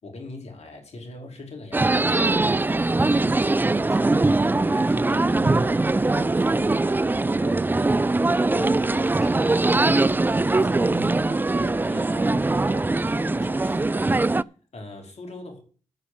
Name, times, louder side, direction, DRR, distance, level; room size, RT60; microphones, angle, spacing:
voice 1, 0.0-14.1 14.4-14.5 14.7-15.6, left 2 dB, 55° left, 4.2 m, -41 dB
sound 1, 1.7-14.4, right 2 dB, 15° right, 0.4 m, -21 dB
12.0 x 4.9 x 7.8 m
hypercardioid pair, 40°, 13 cm